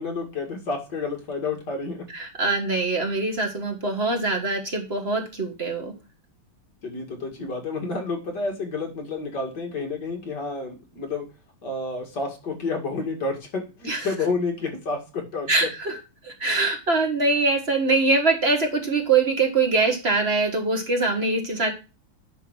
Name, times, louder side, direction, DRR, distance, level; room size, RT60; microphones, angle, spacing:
voice 1, 0.0-2.1 6.8-11.3 11.6-15.7, left 3 dB, 55° left, 2 dB, 2.7 m, -30 dB
voice 2, 2.1-5.9 13.9-14.1 15.5-16.0 16.2-21.7, right 3 dB, 35° right, 3 dB, 1.5 m, -23 dB
10.0 x 3.5 x 6.3 m, 0.31 s
omnidirectional pair, 2.3 m